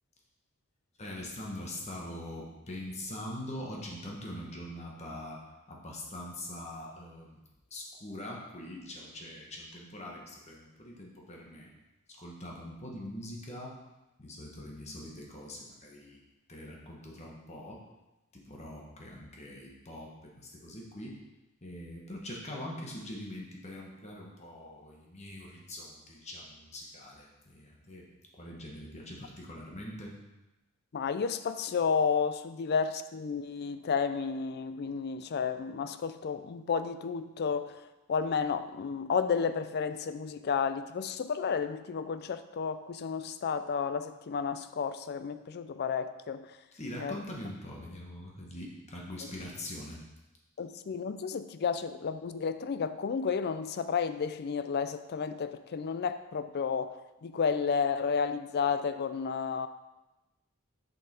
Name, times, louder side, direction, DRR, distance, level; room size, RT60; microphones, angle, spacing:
voice 1, 1.0-7.4 7.7-11.7 12.2-13.8 14.2-16.2 16.5-17.8 18.3-21.2 21.6-28.1 28.4-30.1 46.7-50.0, left 1 dB, 30° left, -2 dB, 1.2 m, -43 dB
voice 2, 30.9-37.8 38.1-46.5 47.0-47.2 50.6-56.9 57.2-59.7, left 6 dB, 50° left, 11 dB, 0.4 m, -32 dB
6.9 x 5.5 x 4.3 m, 1.0 s
head